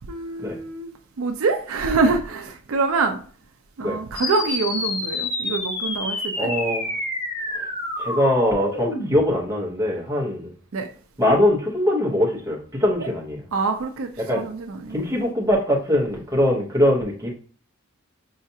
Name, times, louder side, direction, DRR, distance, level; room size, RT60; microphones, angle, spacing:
voice 1, 0.1-0.9 1.2-3.2 3.8-6.5 10.7-10.9 13.5-14.1 14.4-15.0, right 4 dB, 70° right, 0.4 m, -25 dB
sound 1, 4.1-9.2, left 2 dB, 45° left, 1.5 m, -28 dB
voice 2, 6.4-6.8 7.5-7.6 8.0-10.5 11.2-13.4 14.2-14.4 14.9-17.3, left 1 dB, 15° right, 0.9 m, -22 dB
5.5 x 2.4 x 2.7 m
head